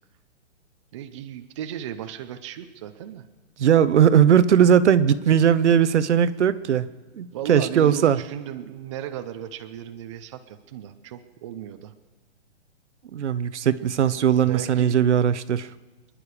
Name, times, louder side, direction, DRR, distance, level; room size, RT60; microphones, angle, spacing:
voice 1, 0.9-3.2 7.3-11.9 14.5-15.0, right 10 dB, 25° right, 8 dB, 0.7 m, -35 dB
voice 2, 3.6-6.9 7.1-8.2 13.1-15.7, right 8 dB, 70° right, 14 dB, 0.9 m, -19 dB
25.5 x 10.5 x 5.0 m, 1.3 s
hypercardioid pair, 160°, 36 cm